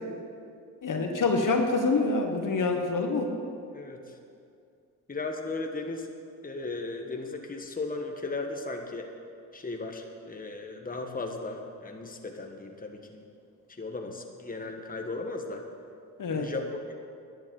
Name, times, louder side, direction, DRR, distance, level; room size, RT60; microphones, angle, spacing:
voice 1, 0.8-3.3 16.2-16.5, left 3 dB, 50° left, 4 dB, 1.6 m, -26 dB
voice 2, 3.7-4.2 5.1-6.1 6.4-9.1 9.5-13.2 13.8-15.6 16.3-16.9, left 3 dB, 20° left, 3 dB, 1.5 m, -36 dB
11.0 x 7.3 x 9.4 m, 2.5 s
supercardioid pair, 55°, 39 cm